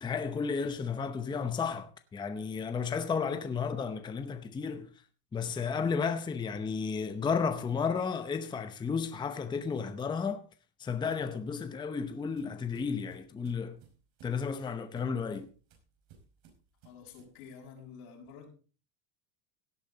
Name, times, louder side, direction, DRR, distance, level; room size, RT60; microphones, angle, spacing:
voice 1, 0.0-4.9 5.3-10.4 10.8-13.8 14.2-15.5, left 5 dB, 10° left, 0.7 m, -33 dB
sound 1, 11.5-17.4, right 6 dB, 65° right, 5.2 m, -60 dB
voice 2, 16.8-18.5, left 6 dB, 90° left, 6.3 m, -49 dB
17.0 x 8.8 x 3.9 m
cardioid pair, 155°, 43 cm